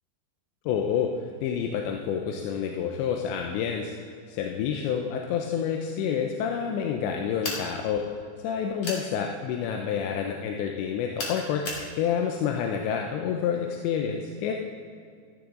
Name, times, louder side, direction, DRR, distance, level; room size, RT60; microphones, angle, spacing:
voice 1, 0.7-1.1 1.4-8.0 8.4-14.5, left 7 dB, 80° left, 2 dB, 2.9 m, -28 dB
sound 1, 7.4-7.7 8.8-9.1 11.2-11.9, left 2 dB, 50° left, 1.7 m, -33 dB
13.5 x 12.5 x 3.8 m, 2.2 s
omnidirectional pair, 5.4 m